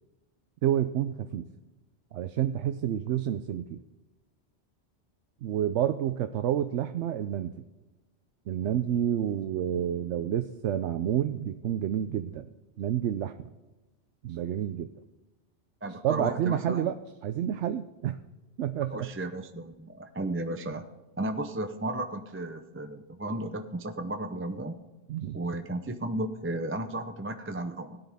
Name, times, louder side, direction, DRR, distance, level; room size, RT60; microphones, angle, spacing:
voice 1, 0.6-1.5 2.1-3.8 5.4-7.5 8.5-12.5 12.8-13.5 14.2-14.9 16.0-17.0 17.2-18.2 18.6-19.1 25.1-25.4, right 10 dB, 80° right, 10 dB, 0.9 m, -29 dB
voice 2, 15.8-16.9 18.9-20.8 21.2-24.7 25.3-28.0, right 1 dB, 15° right, 7 dB, 0.5 m, -34 dB
17.0 x 10.0 x 3.5 m, 1.1 s
omnidirectional pair, 1.2 m